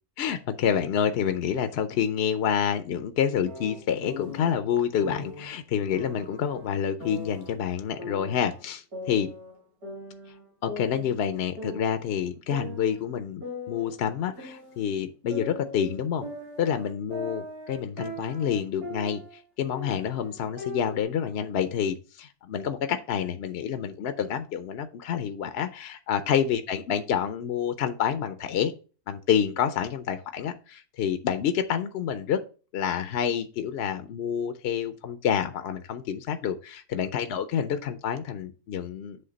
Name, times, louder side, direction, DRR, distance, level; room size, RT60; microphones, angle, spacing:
voice 1, 0.2-9.3 10.6-16.3 16.6-19.2 19.6-28.7 29.1-32.4 32.7-39.2, left 8 dB, 65° left, 9 dB, 0.6 m, -28 dB
sound 1, 3.5-4.5 5.0-5.5 5.9-7.5 8.0-9.6 9.8-11.3 11.6-12.1 12.5-14.9 15.3-19.4 19.7-21.0, left 1 dB, 70° right, 3.0 m, -40 dB
7.9 x 3.2 x 5.2 m, 0.36 s
omnidirectional pair, 1.6 m